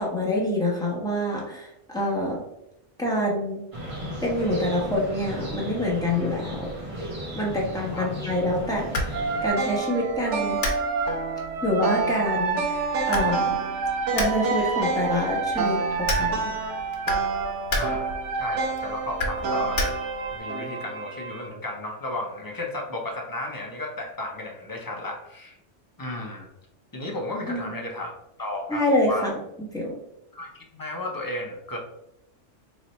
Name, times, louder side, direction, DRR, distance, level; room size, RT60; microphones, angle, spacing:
voice 1, 0.0-2.4 3.0-3.6 4.2-6.7 7.3-10.6 11.6-13.6 14.1-16.4 27.5-27.8 28.7-29.3 29.6-30.0, left 1 dB, 5° left, -4 dB, 0.9 m, -26 dB
sound 1, 3.7-9.5, equal, 35° right, 0.7 m, -35 dB
sound 2, 8.4-20.4, left 1 dB, 75° left, 1.2 m, -34 dB
sound 3, 9.1-21.5, right 4 dB, 80° right, 1.0 m, -28 dB
voice 2, 17.8-19.8 20.3-25.6 26.0-26.5 26.9-28.1 28.4-29.3 30.3-31.8, left 1 dB, 25° left, 0 dB, 0.6 m, -34 dB
3.1 x 2.6 x 4.1 m, 0.85 s
omnidirectional pair, 1.3 m